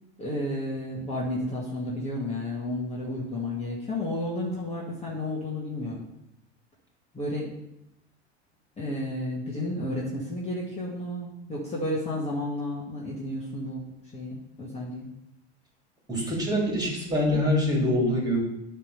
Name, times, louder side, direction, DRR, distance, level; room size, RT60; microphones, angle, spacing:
voice 1, 0.2-6.1 7.1-7.5 8.8-13.8 14.1-15.1, left 1 dB, 20° left, -4 dB, 2.0 m, -32 dB
voice 2, 16.1-18.4, left 1 dB, 10° right, -2 dB, 3.5 m, -24 dB
9.7 x 3.7 x 6.6 m, 0.83 s
hypercardioid pair, 85°, 33 cm